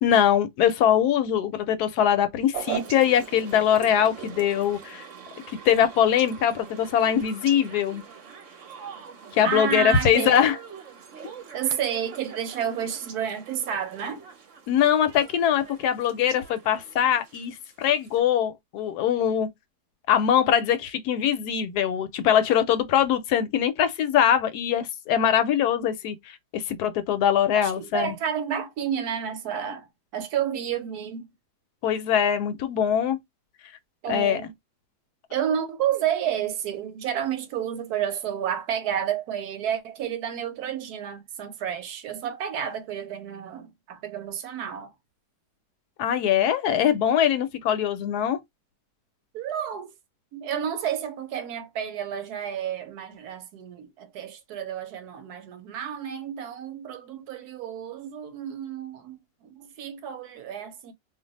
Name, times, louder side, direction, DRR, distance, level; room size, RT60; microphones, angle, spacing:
voice 1, 0.0-5.1 5.7-8.0 9.3-10.6 14.7-19.5 20.1-28.1 31.8-33.2 34.1-34.4 46.0-48.4, left 9 dB, 75° left, 1.1 m, -22 dB
sound 1, 2.5-18.2, right 7 dB, 55° right, 0.9 m, -42 dB
voice 2, 9.4-10.4 11.5-14.2 27.5-29.9 30.1-31.3 34.0-34.5 35.3-44.9 49.3-49.9 50.3-60.9, right 9 dB, 75° right, 1.1 m, -30 dB
2.5 x 2.3 x 3.9 m
omnidirectional pair, 1.8 m